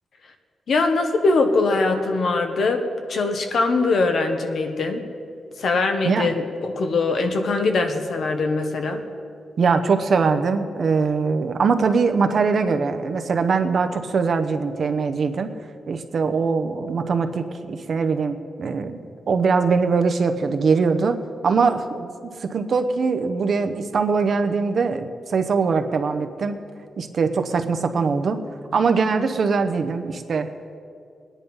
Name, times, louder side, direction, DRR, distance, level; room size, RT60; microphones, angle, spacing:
voice 1, 0.7-5.0 5.6-9.0, left 3 dB, 55° left, 5 dB, 1.3 m, -22 dB
voice 2, 9.6-15.5 15.9-21.2 21.4-26.6 27.0-28.4 28.7-30.5, right 5 dB, 45° right, 7 dB, 0.8 m, -22 dB
20.5 x 10.0 x 5.5 m, 2.4 s
wide cardioid pair, 160°, 0 cm